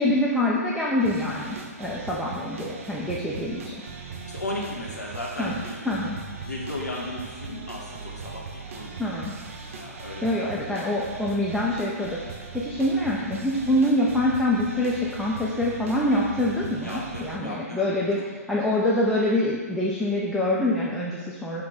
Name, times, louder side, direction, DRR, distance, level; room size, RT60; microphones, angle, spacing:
voice 1, 0.0-3.8 5.4-5.6 5.9-6.2 9.0-9.4 10.2-18.2 18.5-21.6, left 1 dB, ahead, -7 dB, 0.3 m, -25 dB
sound 1, 1.0-17.4, right 4 dB, 50° right, 0.5 m, -39 dB
voice 2, 4.3-5.9 6.4-9.2 9.6-11.2 16.8-18.2, left 1 dB, 90° left, -4 dB, 0.7 m, -36 dB
5.7 x 2.2 x 3.8 m, 1.4 s
figure-of-eight pair, 125°, 9 cm